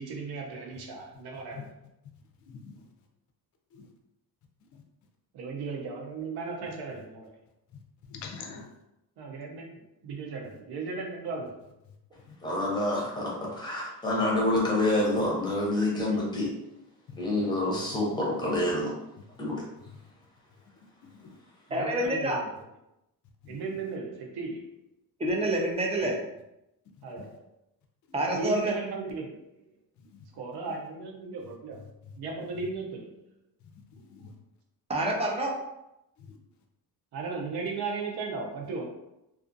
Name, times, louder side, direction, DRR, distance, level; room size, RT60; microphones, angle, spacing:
voice 1, 0.0-1.7 5.3-7.3 9.2-11.6 21.7-22.7 23.5-24.7 27.0-27.4 28.3-29.4 30.3-31.8 32.2-33.2 37.1-38.8, right 4 dB, 70° right, 1 dB, 0.7 m, -36 dB
voice 2, 2.4-2.8 3.7-3.9 8.1-8.7 17.1-17.2 17.7-18.2 21.1-21.4 23.4-23.6 27.2-27.3 30.0-30.2 33.9-34.3 36.2-36.4, left 5 dB, 50° left, 3 dB, 0.5 m, -45 dB
voice 3, 12.4-16.5 17.1-18.9 19.4-19.6, left 1 dB, 10° left, -4 dB, 0.7 m, -27 dB
voice 4, 21.7-22.4 25.2-26.2 28.1-28.7 34.9-35.5, right 1 dB, 15° right, -1 dB, 0.4 m, -27 dB
2.5 x 2.4 x 2.5 m, 0.87 s
cardioid pair, 150°, 40 cm